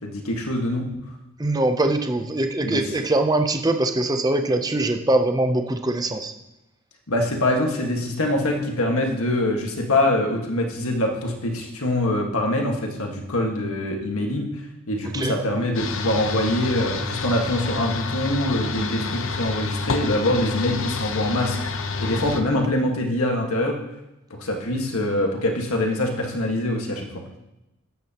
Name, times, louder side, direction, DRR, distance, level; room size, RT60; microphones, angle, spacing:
voice 1, 0.0-0.9 2.6-3.0 7.1-14.5 14.9-21.7 22.0-23.8 24.3-27.0, left 1 dB, 80° left, 1 dB, 1.6 m, -24 dB
voice 2, 1.4-6.3 15.1-15.3, right 2 dB, 15° right, 6 dB, 0.6 m, -22 dB
sound 1, 15.7-22.4, left 4 dB, 65° left, 0.8 m, -28 dB
12.5 x 9.2 x 3.0 m, 0.92 s
head